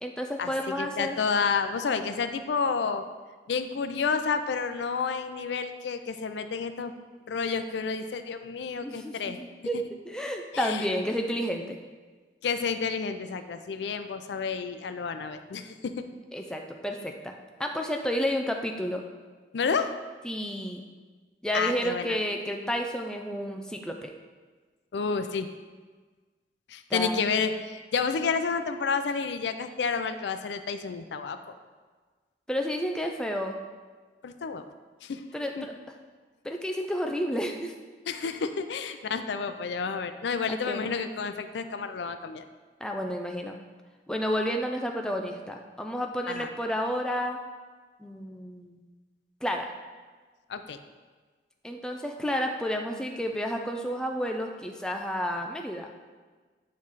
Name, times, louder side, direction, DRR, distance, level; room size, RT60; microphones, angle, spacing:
voice 1, 0.0-1.2 8.8-11.8 16.3-17.3 17.6-19.0 20.2-20.9 21.4-24.1 26.9-27.3 32.5-33.6 35.3-35.7 36.4-37.7 40.5-40.9 42.8-43.5 44.1-47.4 48.0-48.8 49.4-49.7 51.6-55.9, equal, 5° left, 2 dB, 0.4 m, -31 dB
voice 2, 0.8-3.0 3.5-6.9 7.3-9.4 9.7-9.8 10.5-10.9 12.4-15.9 19.5-19.9 21.5-22.2 24.9-25.5 26.7-31.6 34.2-34.6 35.0-35.2 35.6-35.7 38.1-42.4 46.3-46.5 50.5-50.8, left 5 dB, 85° left, 9 dB, 0.4 m, -30 dB
9.3 x 3.2 x 4.0 m, 1.4 s
head